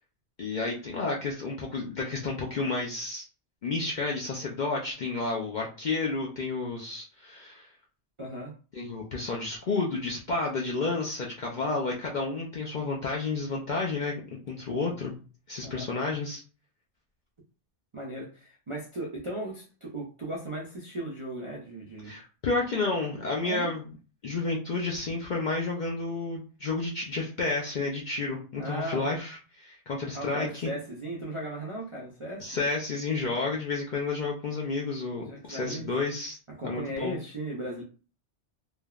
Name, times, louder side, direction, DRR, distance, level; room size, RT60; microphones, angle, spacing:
voice 1, 0.4-3.2 3.6-7.7 8.7-15.1 15.5-16.4 22.1-23.8 24.2-30.7 32.4-36.4 36.6-37.1, left 3 dB, 60° left, -2 dB, 0.5 m, -31 dB
voice 2, 8.2-8.5 15.6-15.9 17.9-22.2 23.4-23.7 28.6-29.0 30.0-32.5 35.3-35.9 36.5-37.8, right 1 dB, 50° right, -4 dB, 0.4 m, -37 dB
3.2 x 2.1 x 2.3 m, 0.36 s
omnidirectional pair, 1.2 m